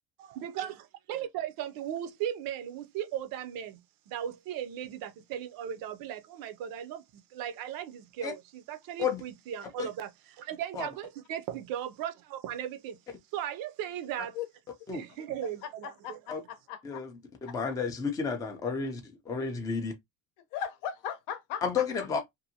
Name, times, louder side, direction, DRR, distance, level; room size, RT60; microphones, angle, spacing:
voice 1, 0.2-3.8 4.1-7.0 7.3-13.0 13.3-14.4 14.9-16.2, right 10 dB, 55° right, 0.5 m, -37 dB
voice 2, 15.4-17.0 17.5-17.6 20.5-21.8, left 9 dB, 75° left, 0.8 m, -38 dB
voice 3, 17.4-19.0 19.3-19.9 21.6-22.2, left 5 dB, 10° left, 0.3 m, -31 dB
2.7 x 2.5 x 2.6 m
cardioid pair, 150°, 42 cm